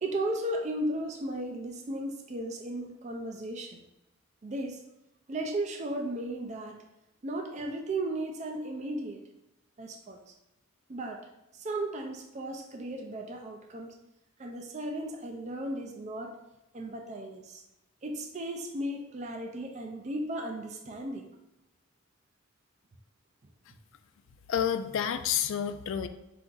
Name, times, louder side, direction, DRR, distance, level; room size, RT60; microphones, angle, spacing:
voice 1, 0.0-3.8 4.4-4.8 5.3-6.8 7.2-9.2 9.8-10.3 10.9-11.3 11.5-13.9 14.4-16.4 16.7-17.6 18.0-21.3, right 1 dB, 30° right, 3 dB, 0.4 m, -35 dB
voice 2, 24.5-26.1, left 8 dB, 60° left, 10 dB, 0.3 m, -29 dB
4.4 x 2.5 x 3.8 m, 0.92 s
head